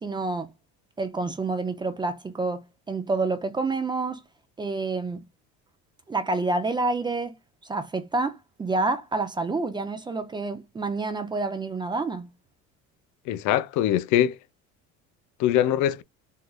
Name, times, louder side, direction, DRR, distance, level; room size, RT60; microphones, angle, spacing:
voice 1, 0.0-0.5 1.0-4.2 4.6-5.2 6.1-7.4 7.6-12.3, right 3 dB, 15° right, 0.4 m, -28 dB
voice 2, 13.3-14.4 15.4-16.0, left 11 dB, 65° left, 0.5 m, -22 dB
3.7 x 3.2 x 2.2 m
cardioid pair, 150°, 32 cm